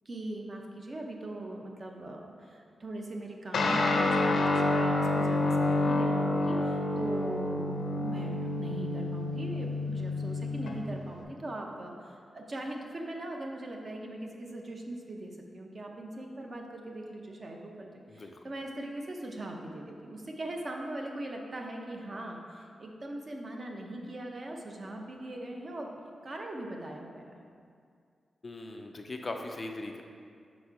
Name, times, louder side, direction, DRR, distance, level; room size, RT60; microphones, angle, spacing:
voice 1, 0.1-17.9 18.1-27.5, right 1 dB, 35° right, 1 dB, 0.6 m, -40 dB
Guitar, 3.5-11.2, left 2 dB, 80° left, 0.6 m, -28 dB
voice 2, 18.1-18.4 28.4-30.0, left 2 dB, 30° left, 3 dB, 0.3 m, -39 dB
5.8 x 4.1 x 4.6 m, 2.3 s
wide cardioid pair, 175°, 0 cm